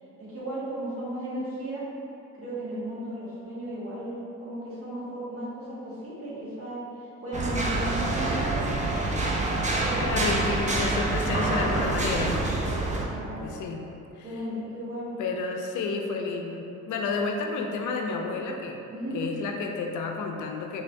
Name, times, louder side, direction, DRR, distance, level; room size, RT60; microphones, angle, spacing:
voice 1, 0.2-1.8 2.3-8.8 9.7-10.1 13.0-13.5 14.2-15.2 18.9-19.2, right 1 dB, 50° right, -9 dB, 1.5 m, -35 dB
sound 1, 7.3-13.1, right 2 dB, 25° right, 0.5 m, -26 dB
voice 2, 10.0-12.5 13.4-13.9 15.2-18.8 19.1-20.8, left 4 dB, 75° left, 2 dB, 0.5 m, -30 dB
3.8 x 3.3 x 2.5 m, 2.8 s
cardioid pair, 90°, 30 cm